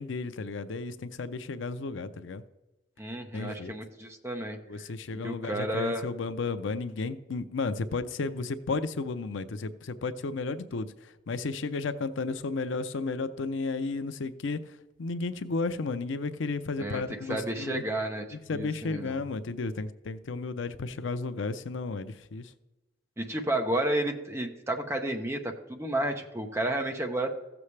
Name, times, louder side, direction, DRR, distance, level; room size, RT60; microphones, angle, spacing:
voice 1, 0.0-2.4 3.3-3.7 4.7-14.7 15.0-17.8 18.3-22.5, left 3 dB, 80° left, 11 dB, 0.5 m, -33 dB
voice 2, 3.0-4.9 5.2-6.0 16.8-17.0 17.3-19.2 23.2-27.3, right 1 dB, 15° right, 3 dB, 0.8 m, -31 dB
15.5 x 7.0 x 3.3 m, 1.0 s
head